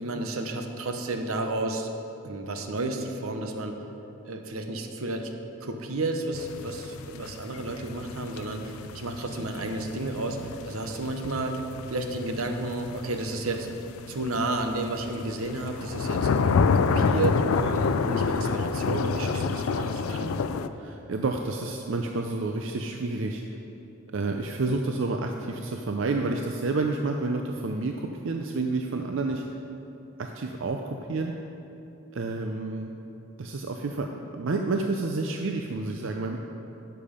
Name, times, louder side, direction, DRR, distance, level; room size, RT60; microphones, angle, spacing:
voice 1, 0.0-1.9 2.2-3.8 4.3-5.3 5.6-10.4 10.6-11.6 11.9-13.7 14.1-16.3 16.7-20.3, right 2 dB, 80° right, 5 dB, 0.9 m, -31 dB
sound 1, 6.3-20.7, left 5 dB, 80° left, 0.4 m, -28 dB
voice 2, 20.7-23.4 24.1-29.4 30.2-31.4 32.1-32.9 33.4-36.4, right 3 dB, 65° right, 3 dB, 0.5 m, -29 dB
10.5 x 6.8 x 5.1 m, 2.9 s
head